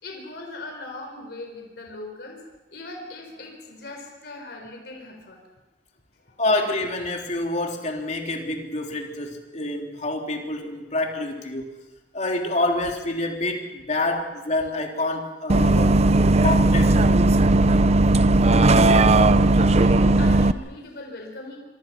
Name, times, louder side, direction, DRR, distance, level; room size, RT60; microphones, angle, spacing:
voice 1, 0.0-2.4 2.7-5.4 6.2-6.4 14.1-14.2 18.2-21.6, left 2 dB, 65° left, 2 dB, 4.5 m, -39 dB
voice 2, 6.4-11.7 12.1-16.0 16.4-17.3, left 2 dB, 40° left, 2 dB, 3.5 m, -27 dB
Bus, 15.5-20.5, right 2 dB, 40° right, 0.7 m, -17 dB
26.5 x 24.5 x 5.9 m, 1.1 s
head